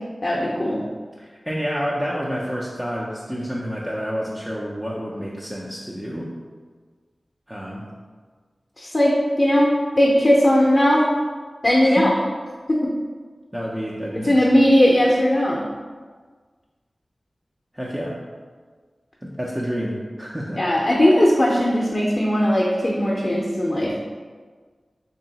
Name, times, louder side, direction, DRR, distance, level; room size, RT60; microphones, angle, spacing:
voice 1, 0.2-0.8 8.8-9.7 10.0-11.1 11.6-12.1 12.7-12.8 14.2-15.6 20.6-24.0, left 1 dB, 35° left, -4 dB, 0.6 m, -18 dB
voice 2, 1.2-6.3 7.5-7.8 11.8-12.1 13.5-14.5 17.7-18.2 19.2-20.7, equal, 10° right, -5 dB, 0.5 m, -29 dB
3.0 x 2.7 x 3.9 m, 1.5 s
wide cardioid pair, 55°, 0 cm